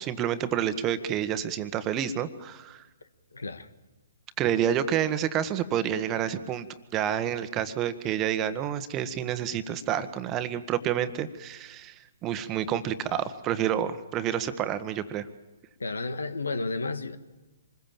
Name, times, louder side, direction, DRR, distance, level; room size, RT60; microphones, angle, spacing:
voice 1, 0.0-2.8 4.4-6.7 6.9-15.3, right 10 dB, 25° right, 1.5 m, -29 dB
voice 2, 3.3-3.7 15.8-17.2, left 3 dB, 75° left, 1.7 m, -32 dB
26.5 x 21.5 x 7.5 m
figure-of-eight pair, 125°, 0 cm